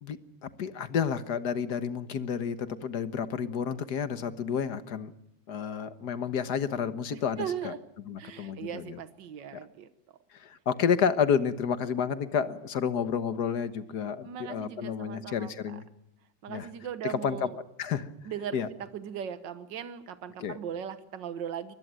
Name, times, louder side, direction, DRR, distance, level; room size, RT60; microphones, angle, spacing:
voice 1, 0.0-5.1 5.5-7.7 8.1-9.0 10.4-15.8 16.5-16.7 17.2-17.4 17.8-18.1 18.5-18.7 20.4-20.6, left 7 dB, 65° left, 12 dB, 1.8 m, -30 dB
voice 2, 7.1-7.8 8.2-9.9 14.2-15.8 16.4-17.6 18.3-21.7, right 8 dB, 80° right, 12 dB, 1.9 m, -38 dB
24.0 x 21.0 x 7.6 m, 0.81 s
omnidirectional pair, 1.9 m